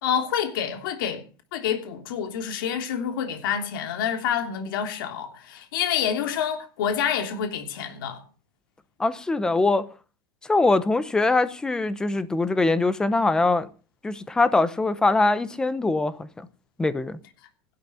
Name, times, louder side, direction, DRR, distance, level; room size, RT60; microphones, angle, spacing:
voice 1, 0.0-1.2 1.5-8.2, left 8 dB, 70° left, 3.2 m, -27 dB
voice 2, 9.0-9.9 10.5-13.7 14.0-16.5 16.8-17.2, left 3 dB, 5° left, 0.9 m, -22 dB
16.5 x 11.5 x 5.6 m
supercardioid pair, 180°, 12 cm